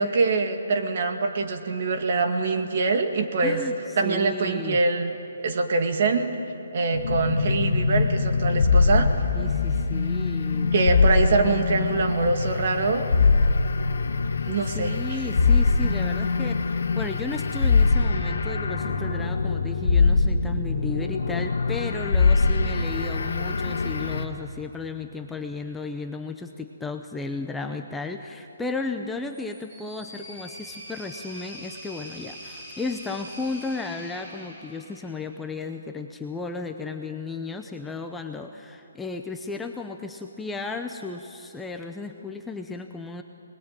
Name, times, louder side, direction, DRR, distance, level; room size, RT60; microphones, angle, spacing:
voice 1, 0.0-3.6 4.0-5.1 5.4-6.3 6.7-9.1 10.7-13.1 14.5-14.9, right 3 dB, 45° right, 4 dB, 2.3 m, -24 dB
voice 2, 3.4-4.8 9.3-10.7 14.4-43.2, left 3 dB, 5° left, 4 dB, 0.7 m, -34 dB
sound 1, 6.9-24.2, left 4 dB, 75° left, 1.9 m, -23 dB
sound 2, 29.2-35.5, equal, 20° right, 6.3 m, -43 dB
26.5 x 20.5 x 9.0 m, 2.8 s
hypercardioid pair, 170°, 0 cm